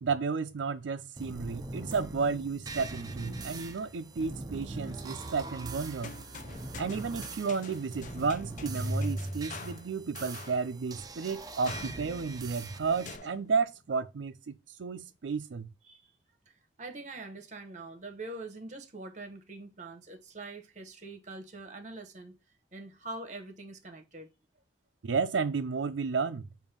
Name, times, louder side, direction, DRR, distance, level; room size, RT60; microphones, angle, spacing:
voice 1, 0.0-6.1 6.8-15.7 25.0-26.5, right 5 dB, 85° right, 0.4 m, -32 dB
sound 1, 1.2-13.2, right 2 dB, 20° right, 0.5 m, -40 dB
sound 2, 4.2-5.1 6.0-10.8 11.7-12.3 13.1-13.9, left 5 dB, 45° left, 0.5 m, -48 dB
voice 2, 16.8-22.3 22.7-24.3, right 2 dB, 40° right, 1.0 m, -44 dB
7.1 x 2.6 x 5.1 m
head